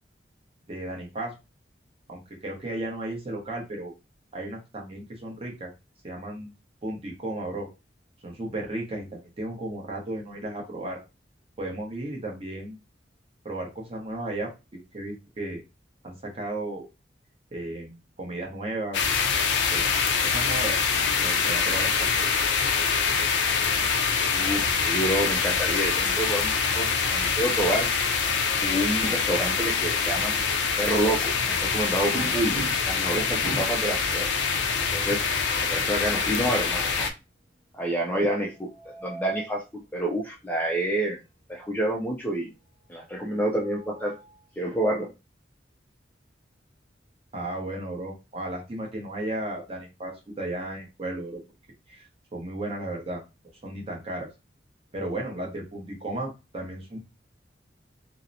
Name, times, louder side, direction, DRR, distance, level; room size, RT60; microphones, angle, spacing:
voice 1, 0.7-1.3 2.1-3.9 4.3-5.7 6.0-6.5 6.8-7.7 8.2-11.0 11.6-12.8 13.4-14.5 14.9-15.6 16.0-16.9 17.5-19.2 19.7-19.9 20.2-21.9 22.2-22.3 47.3-51.4 51.9-53.2 53.6-54.3 54.9-57.0, right 1 dB, 30° right, -1 dB, 0.8 m, -34 dB
sound 1, 18.9-37.1, left 5 dB, 80° left, 0.4 m, -25 dB
voice 2, 24.3-27.9 28.6-32.6 32.8-34.3 34.9-35.3 35.6-37.1 37.7-38.7 39.0-41.2 41.5-42.5 42.9-44.1 44.6-45.1, right 1 dB, 10° left, -1 dB, 0.3 m, -28 dB
sound 2, 32.1-33.0 33.4-33.9 35.1-35.9 38.5-39.6 41.0-41.2 41.5-41.6 43.2-44.4, right 2 dB, 5° right, 1.0 m, -38 dB
2.7 x 2.0 x 2.5 m, 0.27 s
head